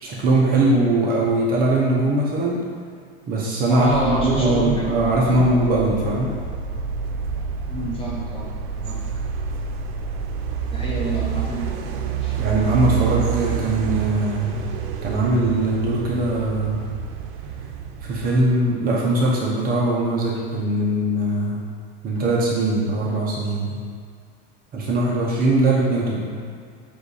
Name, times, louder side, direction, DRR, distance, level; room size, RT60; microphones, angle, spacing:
voice 1, 0.0-2.6 3.3-6.4 12.4-14.6 15.0-16.8 18.0-21.6 22.0-23.8 24.7-26.3, right 2 dB, 30° right, -4 dB, 0.9 m, -21 dB
voice 2, 3.7-4.9 5.2-5.4 7.7-8.5 8.8-9.0 10.7-11.7 12.2-12.4, right 1 dB, 15° left, -5 dB, 1.2 m, -27 dB
sound 1, 3.8-18.6, right 7 dB, 80° right, 0.7 m, -28 dB
7.9 x 2.6 x 4.8 m, 2.1 s
supercardioid pair, 145°, 30 cm